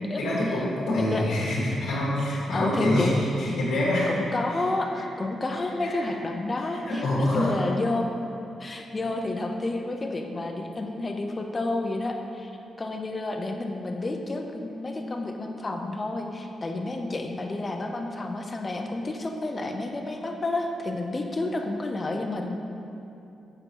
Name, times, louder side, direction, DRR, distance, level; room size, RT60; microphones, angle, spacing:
voice 1, 0.2-3.1 3.4-4.1 4.5-4.6 5.0-5.1 5.8-6.1 6.5-7.5, left 1 dB, 90° left, -9 dB, 1.6 m, -26 dB
voice 2, 2.5-3.2 4.1-8.1 8.6-12.5 12.8-22.7, left 2 dB, 25° left, 3 dB, 0.5 m, -30 dB
7.6 x 5.3 x 4.6 m, 2.8 s
wide cardioid pair, 140°, 0 cm